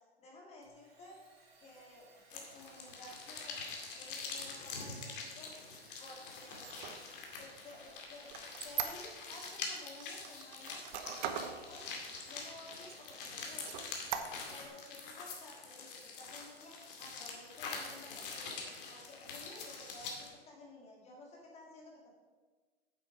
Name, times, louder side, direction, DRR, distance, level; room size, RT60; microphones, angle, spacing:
voice 1, 0.2-1.2 1.6-3.6 3.9-5.5 6.0-6.7 7.4-8.3 8.6-10.8 11.1-11.9 12.2-13.9 14.5-18.6 18.9-22.1, left 2 dB, 20° left, -1 dB, 2.0 m, -54 dB
Domestic sounds home sounds, 0.6-12.7, right 4 dB, 70° right, 2.7 m, -63 dB
sound 1, 2.3-20.3, left 4 dB, 55° left, 2.3 m, -45 dB
Squeak, 6.5-9.5 10.0-11.6 12.1-12.2 12.6-13.2 13.6-14.7, right 8 dB, 45° right, 1.0 m, -41 dB
9.0 x 7.8 x 4.9 m, 1.4 s
hypercardioid pair, 130°, 31 cm